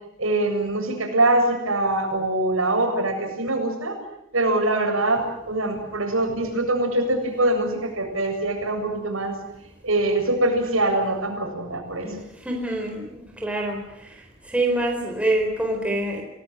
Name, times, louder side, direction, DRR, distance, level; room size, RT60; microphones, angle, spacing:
voice 1, 0.2-4.0 4.3-9.4 9.8-12.2, right 2 dB, 75° right, 3 dB, 7.6 m, -23 dB
voice 2, 12.0-13.8 14.5-16.2, right 1 dB, 5° right, 1 dB, 4.4 m, -26 dB
30.0 x 19.0 x 9.7 m, 0.84 s
head